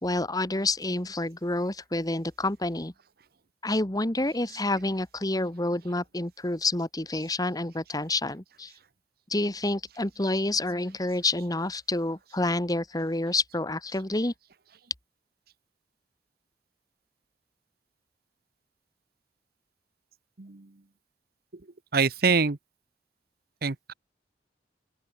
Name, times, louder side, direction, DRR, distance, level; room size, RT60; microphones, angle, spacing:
voice 1, 0.0-2.9 3.6-8.7 9.3-14.3, left 2 dB, 20° left, 1.7 m, -28 dB
voice 2, 21.9-22.6 23.6-23.9, right 5 dB, 60° right, 1.0 m, -24 dB
open air
head